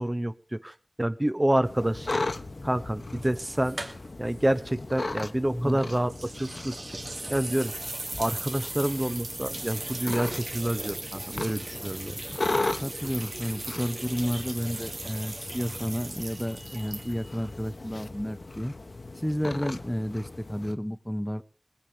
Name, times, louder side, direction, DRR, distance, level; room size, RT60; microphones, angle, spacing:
voice 1, 0.0-2.2 2.6-3.8 4.2-7.0 7.3-7.7 8.2-12.2, right 1 dB, 30° right, 11 dB, 0.8 m, -28 dB
sound 1, 1.6-20.7, left 2 dB, 80° left, 1.0 m, -37 dB
sound 2, 3.2-4.3 4.6-4.7 6.1-17.4, right 2 dB, 80° right, 2.8 m, -38 dB
voice 2, 5.5-5.8 12.8-18.7 19.2-21.4, equal, 5° left, 12 dB, 1.1 m, -31 dB
20.0 x 8.7 x 6.7 m, 0.40 s
wide cardioid pair, 45°, 0 cm